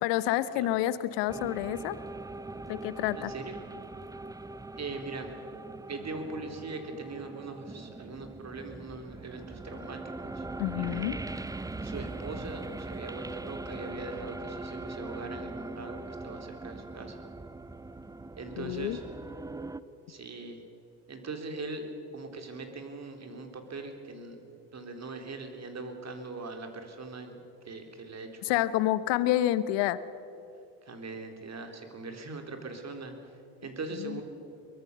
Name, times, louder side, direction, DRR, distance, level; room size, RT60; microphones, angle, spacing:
voice 1, 0.0-2.0 2.7-3.3 10.6-11.2 18.6-19.0 28.4-30.0 34.0-34.2, left 14 dB, 65° left, 16 dB, 1.2 m, -28 dB
sound 1, 1.3-19.8, right 2 dB, 10° right, 0.7 m, -41 dB
voice 2, 3.1-3.6 4.8-5.3 5.9-10.5 10.7-11.2 11.8-17.2 18.4-19.0 20.1-20.6 21.1-24.4 24.7-27.4 27.7-28.6 30.8-33.1 33.6-34.2, right 3 dB, 35° right, 5 dB, 3.9 m, -41 dB
23.0 x 21.0 x 6.9 m, 2.8 s
hypercardioid pair, 65°, 46 cm